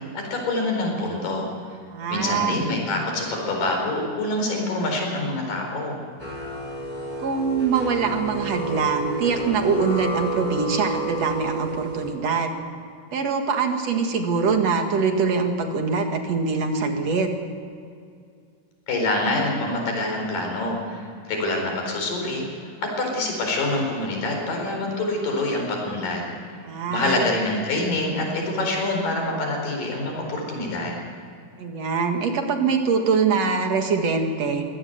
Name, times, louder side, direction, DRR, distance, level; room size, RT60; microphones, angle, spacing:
voice 1, 0.1-1.5 2.1-6.0 18.9-22.5 23.0-26.3 26.9-31.0, left 2 dB, 85° left, 1 dB, 6.2 m, -26 dB
voice 2, 1.9-2.6 7.2-12.6 13.1-17.3 26.6-27.2 31.6-34.6, right 5 dB, 55° right, 4 dB, 2.8 m, -23 dB
sound 1, 6.2-12.1, right 3 dB, 10° left, 4.7 m, -30 dB
23.0 x 17.5 x 8.1 m, 2.3 s
omnidirectional pair, 3.8 m